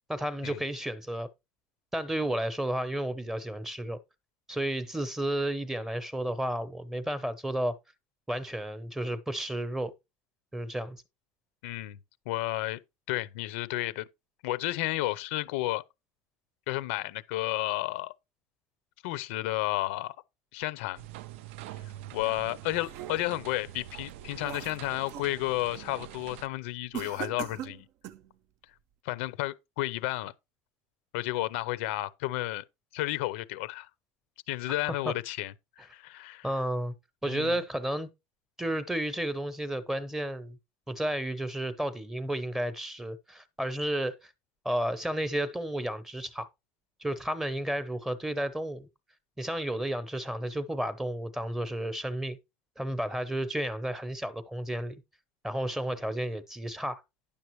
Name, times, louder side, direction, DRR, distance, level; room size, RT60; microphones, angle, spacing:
voice 1, 0.1-1.3 1.9-4.0 4.5-7.8 8.3-9.9 10.5-11.0 36.4-36.9 37.2-38.1 38.6-40.6 40.9-44.3 44.6-46.5 47.0-48.9 49.4-52.4 52.8-55.0 55.4-57.0, right 1 dB, 5° right, 0.8 m, -32 dB
voice 2, 11.6-12.0 12.3-12.8 13.1-14.1 14.4-15.8 16.7-18.1 19.0-20.1 20.5-21.0 22.1-27.9 29.0-30.3 31.1-32.6 32.9-33.9 34.5-36.5 37.3-37.6, left 17 dB, 85° left, 0.7 m, -32 dB
sound 1, 20.9-26.5, right 13 dB, 90° right, 0.4 m, -45 dB
sound 2, 22.4-23.5 24.0-25.3 25.7-26.1 26.9-28.3, right 11 dB, 55° right, 0.7 m, -41 dB
10.0 x 6.9 x 3.1 m
cardioid pair, 140°, 6 cm